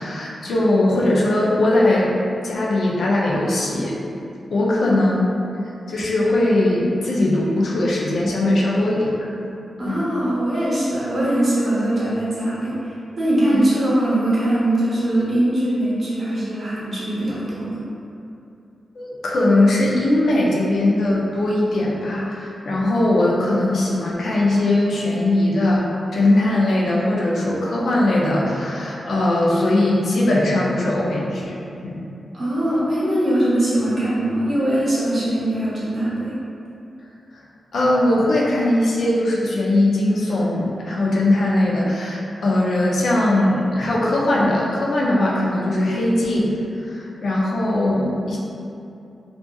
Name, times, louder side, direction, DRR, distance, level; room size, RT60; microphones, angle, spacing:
voice 1, 0.0-2.1 2.4-3.9 4.5-5.3 5.9-9.1 9.9-10.0 13.5-13.6 18.9-25.8 26.1-31.5 31.8-32.0 37.3-37.4 37.7-46.5 46.9-48.4, left 1 dB, 65° left, -5 dB, 0.4 m, -20 dB
voice 2, 9.8-17.8 32.3-36.4, right 1 dB, 40° right, -9 dB, 0.8 m, -21 dB
2.6 x 2.4 x 2.3 m, 2.7 s
wide cardioid pair, 135°, 0 cm